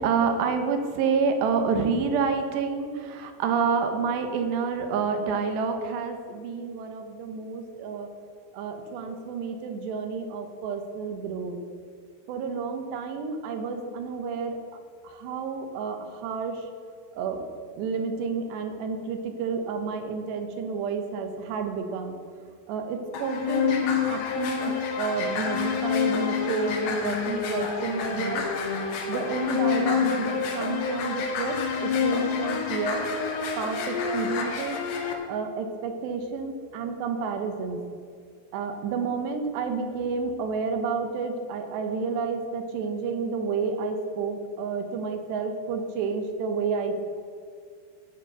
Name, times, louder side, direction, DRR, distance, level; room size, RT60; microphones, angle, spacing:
voice 1, 0.0-8.1 8.5-11.6 12.3-14.6 15.0-16.6 17.1-17.4 17.8-22.2 22.7-28.4 29.1-33.1 33.6-34.8 35.3-37.8 38.5-47.0, right 5 dB, 75° right, 6 dB, 3.1 m, -29 dB
sound 1, 23.1-35.1, left 6 dB, 75° left, 3.4 m, -28 dB
14.0 x 6.8 x 6.8 m, 2.1 s
omnidirectional pair, 5.1 m